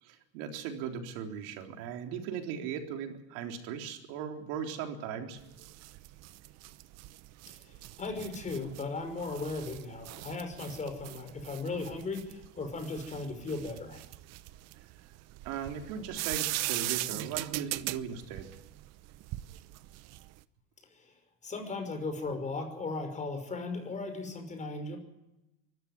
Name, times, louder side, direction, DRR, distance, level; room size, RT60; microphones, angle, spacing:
voice 1, 0.0-5.4 15.4-18.5, right 8 dB, 70° right, 4 dB, 3.8 m, -38 dB
sound 1, 5.4-20.4, right 17 dB, 55° right, 0.9 m, -40 dB
voice 2, 7.5-14.0 20.9-21.1 21.4-25.0, left 3 dB, 25° left, 6 dB, 5.7 m, -37 dB
24.0 x 14.0 x 9.7 m, 0.92 s
cardioid pair, 130°, 31 cm